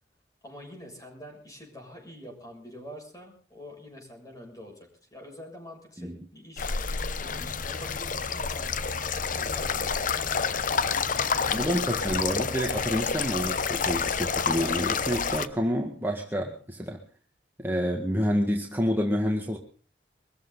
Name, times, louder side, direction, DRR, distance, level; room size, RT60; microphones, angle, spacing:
voice 1, 0.4-10.3, equal, 20° left, 1 dB, 6.9 m, -46 dB
sound 1, 6.6-15.5, left 5 dB, 50° left, 0.9 m, -28 dB
voice 2, 11.5-17.0 17.6-19.6, equal, 10° right, 1 dB, 1.8 m, -28 dB
23.5 x 14.5 x 4.0 m, 0.40 s
head